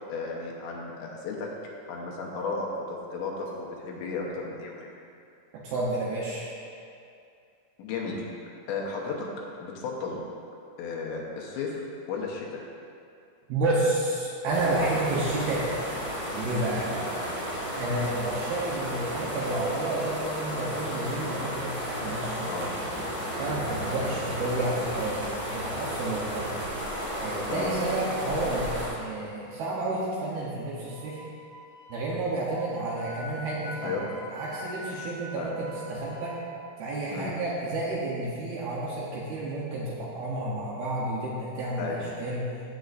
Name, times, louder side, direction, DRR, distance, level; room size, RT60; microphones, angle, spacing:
voice 1, 0.1-1.5 1.9-4.8 7.8-8.3 8.7-9.3 9.6-10.2 10.8-11.8 12.1-12.6 16.8-16.9 22.5-22.7 27.5-27.7 33.8-34.0 35.4-35.5 37.1-37.3 41.8-42.0, left 4 dB, 75° left, -2 dB, 3.3 m, -34 dB
voice 2, 5.5-6.5 13.5-15.7 16.3-16.9 17.7-22.7 23.4-26.5 27.2-31.2 31.9-34.0 34.3-36.4 36.8-41.9 42.2-42.5, right 2 dB, 70° right, -5 dB, 2.5 m, -30 dB
sound 1, 14.5-28.9, equal, 25° right, 1.3 m, -33 dB
Wind instrument woodwind instrument, 30.7-36.5, equal, 40° right, 2.5 m, -44 dB
15.5 x 7.8 x 2.6 m, 2.5 s
omnidirectional pair, 5.3 m